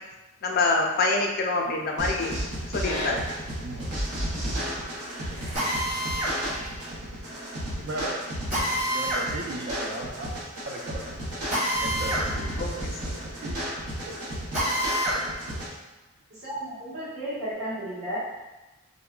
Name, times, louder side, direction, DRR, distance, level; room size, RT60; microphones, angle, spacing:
voice 1, 0.4-2.3 2.7-3.2 12.6-12.7, left 3 dB, 40° left, 1 dB, 0.3 m, -25 dB
sound 1, 2.0-15.7, equal, 90° right, 0.9 m, -33 dB
voice 2, 3.6-4.0 7.8-8.2 8.9-13.6 14.0-14.4 14.7-14.8, right 2 dB, 50° right, -1 dB, 0.3 m, -38 dB
Drill, 5.5-6.4 8.5-9.3 11.5-12.3 12.6-12.7 14.5-15.2, equal, 30° right, 0.9 m, -27 dB
voice 3, 16.3-18.2, right 1 dB, 75° right, -10 dB, 1.2 m, -33 dB
3.5 x 2.1 x 2.3 m, 1.1 s
head